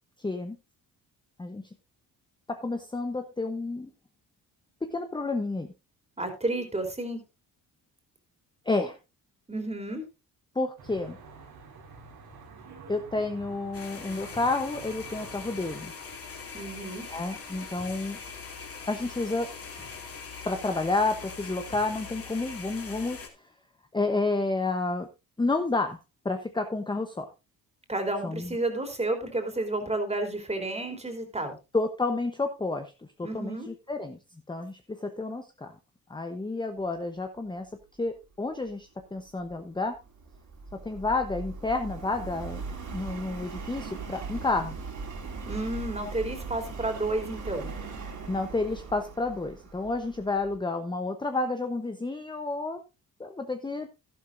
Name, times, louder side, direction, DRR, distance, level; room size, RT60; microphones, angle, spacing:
voice 1, 0.2-0.6 1.4-1.6 2.5-3.9 4.8-5.7 8.6-9.0 10.5-11.2 12.9-15.9 17.1-18.2 18.9-19.5 20.4-23.2 23.9-25.1 25.4-26.0 26.2-27.3 28.2-28.6 31.7-32.9 33.3-34.2 34.5-35.7 36.1-37.7 38.0-40.0 40.8-42.6 42.9-44.8 48.3-52.8 53.2-53.9, left 3 dB, 10° left, 6 dB, 0.9 m, -30 dB
voice 2, 6.2-7.2 9.5-10.0 16.5-17.1 27.9-31.6 33.2-33.7 45.4-47.7, right 2 dB, 15° right, 5 dB, 3.3 m, -31 dB
Traffic noise roadway noise, 10.8-15.8, right 4 dB, 85° right, 4.5 m, -48 dB
sound 1, 13.7-23.3, left 5 dB, 40° left, 2.7 m, -42 dB
Subway metro underground, 39.3-50.6, right 4 dB, 55° right, 3.9 m, -40 dB
12.0 x 12.0 x 2.6 m, 0.27 s
cardioid pair, 90°, 36 cm